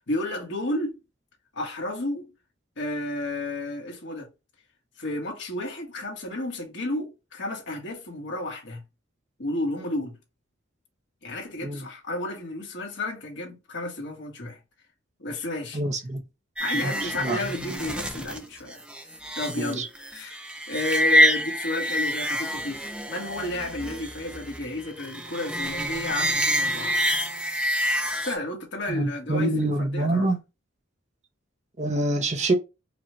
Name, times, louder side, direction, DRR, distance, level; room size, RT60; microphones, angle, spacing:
voice 1, 0.1-1.0 1.5-2.3 2.8-4.3 5.0-8.8 9.4-10.2 11.2-14.6 15.2-15.8 16.6-18.8 19.3-27.0 28.2-30.3, left 1 dB, 60° left, 1.6 m, -32 dB
voice 2, 15.7-16.2 16.7-17.4 19.6-19.9 28.9-30.4 31.8-32.5, right 1 dB, 35° right, 0.8 m, -26 dB
sound 1, 16.6-28.4, equal, 5° right, 0.5 m, -27 dB
5.0 x 2.4 x 3.0 m
head